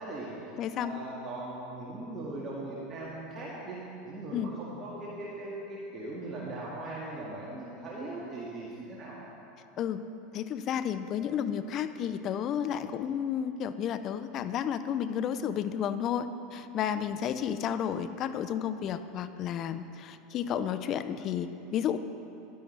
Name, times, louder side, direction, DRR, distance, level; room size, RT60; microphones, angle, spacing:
voice 1, 0.0-3.8 4.0-9.2, right 2 dB, 35° right, -6 dB, 1.8 m, -39 dB
voice 2, 0.6-1.0 4.3-4.5 9.8-10.1 10.3-22.0, left 9 dB, 45° left, 11 dB, 0.5 m, -32 dB
11.0 x 10.0 x 3.3 m, 2.8 s
hypercardioid pair, 85°, 0 cm